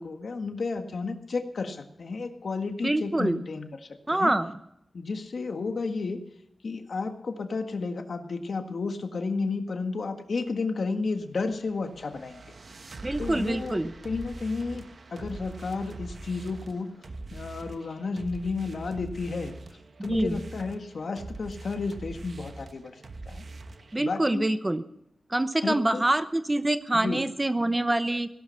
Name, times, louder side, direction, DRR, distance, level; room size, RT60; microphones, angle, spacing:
voice 1, 0.0-4.3 4.9-6.2 6.6-12.5 13.2-13.8 14.0-16.9 17.3-19.6 20.0-23.4 24.0-24.5 25.6-26.0 26.9-27.2, left 4 dB, 70° left, 6 dB, 1.7 m, -32 dB
voice 2, 2.8-3.4 4.1-4.5 13.0-13.9 20.0-20.4 23.9-24.8 25.3-28.3, right 1 dB, 20° right, 11 dB, 0.9 m, -26 dB
sound 1, 11.3-24.0, right 2 dB, 60° right, 1.1 m, -43 dB
17.0 x 11.5 x 5.8 m, 0.78 s
wide cardioid pair, 80°, 0 cm